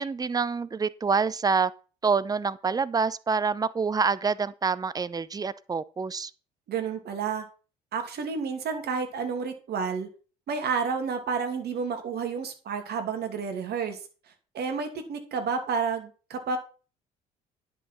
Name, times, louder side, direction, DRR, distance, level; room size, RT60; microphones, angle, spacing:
voice 1, 0.0-1.7 2.0-6.3, right 5 dB, 20° right, 0.7 m, -26 dB
voice 2, 6.7-7.5 7.9-10.1 10.5-14.0 14.5-16.6, right 5 dB, 55° right, 2.5 m, -30 dB
10.0 x 6.3 x 5.5 m
figure-of-eight pair, 55°, 21 cm